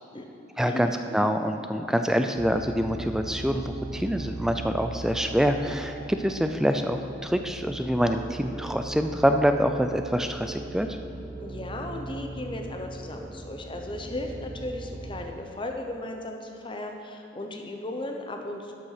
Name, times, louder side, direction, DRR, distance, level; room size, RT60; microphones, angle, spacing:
voice 1, 0.6-10.9, equal, 5° right, 6 dB, 0.3 m, -25 dB
sound 1, 2.4-15.3, right 2 dB, 20° right, 0.9 m, -39 dB
voice 2, 11.4-18.7, left 1 dB, 25° left, 3 dB, 0.8 m, -36 dB
12.0 x 5.5 x 5.8 m, 2.8 s
head